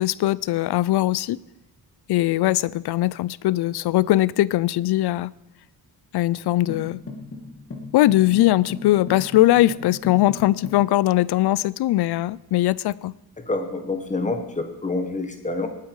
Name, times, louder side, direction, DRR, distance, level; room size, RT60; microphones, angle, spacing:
voice 1, 0.0-1.4 2.1-5.3 6.1-7.0 7.9-13.1, left 15 dB, 80° left, 21 dB, 0.5 m, -20 dB
sound 1, 6.7-10.9, left 3 dB, 35° left, 2.1 m, -37 dB
voice 2, 13.4-15.7, left 2 dB, 20° left, 6 dB, 1.4 m, -27 dB
18.5 x 9.3 x 4.8 m, 0.94 s
wide cardioid pair, 170°, 39 cm